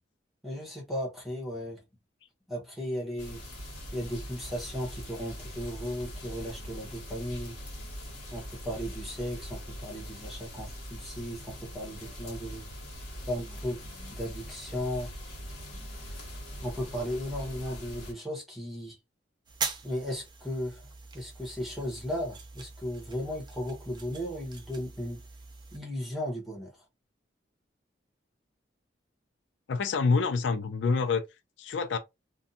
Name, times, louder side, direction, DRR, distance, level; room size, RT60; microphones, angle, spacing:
voice 1, 0.4-1.8 2.5-3.4 3.9-7.5 8.3-12.7 13.3-13.8 14.1-15.1 16.6-19.0 19.8-25.2 25.7-26.7, equal, ahead, 1.0 m, -36 dB
sound 1, 3.2-18.1, equal, 55° left, 1.4 m, -42 dB
sound 2, 19.5-25.8, right 4 dB, 25° right, 0.5 m, -41 dB
voice 2, 29.7-31.2 31.6-32.0, left 4 dB, 85° left, 0.4 m, -26 dB
2.6 x 2.2 x 2.6 m
head